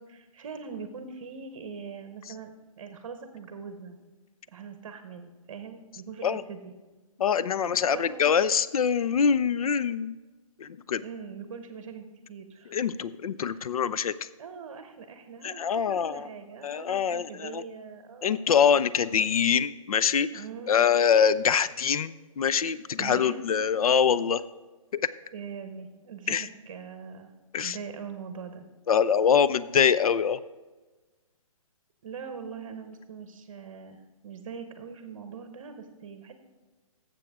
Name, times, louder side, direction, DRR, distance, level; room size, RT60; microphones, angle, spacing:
voice 1, 0.0-4.0 4.5-6.7 7.9-8.2 11.0-12.7 13.4-13.6 14.4-18.5 20.3-20.9 23.0-23.4 25.3-27.3 27.6-28.6 32.0-36.3, right 6 dB, 40° right, 7 dB, 0.9 m, -42 dB
voice 2, 7.2-10.1 10.6-11.0 12.7-14.1 15.4-16.3 16.6-17.6 18.2-20.3 20.7-24.4 24.9-25.0 26.3-26.5 27.5-27.8 28.9-30.4, left 7 dB, 85° left, 17 dB, 0.5 m, -24 dB
12.5 x 7.6 x 3.5 m, 1.3 s
hypercardioid pair, 165°, 18 cm